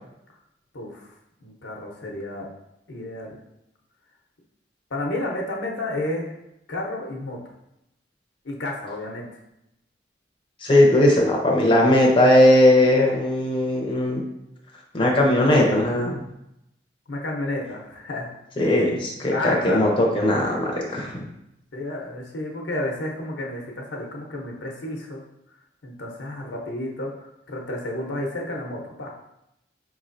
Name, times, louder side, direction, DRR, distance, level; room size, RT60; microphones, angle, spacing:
voice 1, 0.7-1.1 1.4-2.5 2.9-3.4 4.9-6.3 6.7-7.4 8.4-9.3 15.1-15.3 17.1-18.3 19.3-19.9 21.7-25.2 25.8-29.1, left 1 dB, 85° left, 0 dB, 0.8 m, -31 dB
voice 2, 10.6-14.2 14.9-16.2 18.6-21.2, left 1 dB, 25° left, -2 dB, 0.5 m, -18 dB
4.8 x 3.0 x 2.5 m, 0.85 s
head